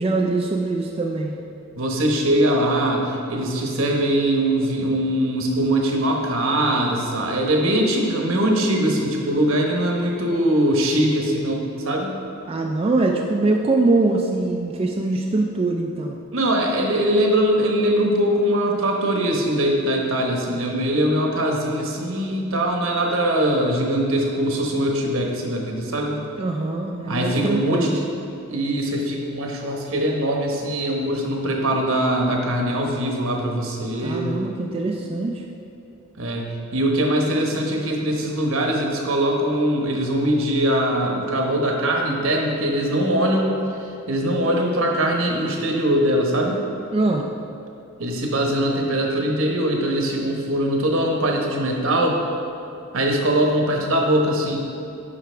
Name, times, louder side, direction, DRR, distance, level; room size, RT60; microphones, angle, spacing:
voice 1, 0.0-1.4 12.5-16.2 26.4-28.0 34.0-35.4 46.9-47.3, right 2 dB, 25° right, 1 dB, 0.3 m, -23 dB
voice 2, 1.8-12.1 16.3-26.2 27.1-28.0 28.5-34.3 36.2-36.4 36.7-43.6 44.1-46.6 48.0-52.2 52.9-54.6, right 1 dB, 70° right, 1 dB, 1.1 m, -22 dB
9.6 x 5.8 x 3.4 m, 2.8 s
head